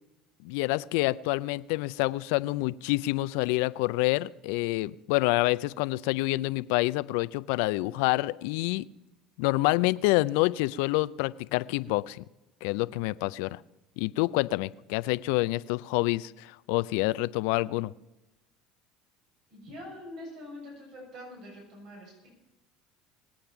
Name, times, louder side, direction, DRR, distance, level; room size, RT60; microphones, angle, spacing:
voice 1, 0.4-8.9 9.4-12.2 12.6-13.6 14.0-17.9, left 20 dB, 70° left, 18 dB, 0.4 m, -27 dB
voice 2, 19.5-22.3, left 1 dB, 65° right, -2 dB, 6.8 m, -44 dB
21.0 x 8.7 x 5.8 m, 0.98 s
hypercardioid pair, 70°, 0 cm